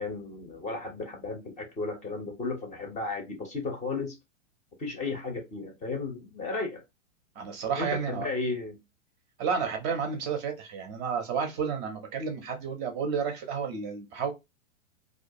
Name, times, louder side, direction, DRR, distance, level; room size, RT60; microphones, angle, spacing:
voice 1, 0.0-4.2 4.8-6.8 7.8-8.8, left 3 dB, 20° left, 0.6 m, -34 dB
voice 2, 7.4-8.3 9.4-14.3, right 6 dB, 30° right, 0.6 m, -31 dB
2.4 x 2.2 x 2.6 m
hypercardioid pair, 120°, 38 cm